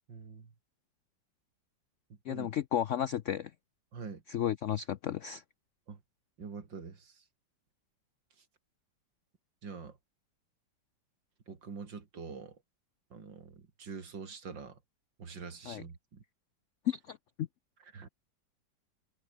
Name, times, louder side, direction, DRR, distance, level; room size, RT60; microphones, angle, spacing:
voice 1, 0.1-0.5 2.1-2.5 3.9-4.2 5.9-6.0 6.4-7.2 9.6-10.0 11.5-12.6 13.1-14.8 15.2-16.2 17.8-18.1, right 5 dB, 80° right, 3.5 m, -45 dB
voice 2, 2.3-3.5 4.3-5.4 15.7-15.8 16.9-17.5, left 10 dB, 75° left, 0.6 m, -33 dB
omnidirectional pair, 2.0 m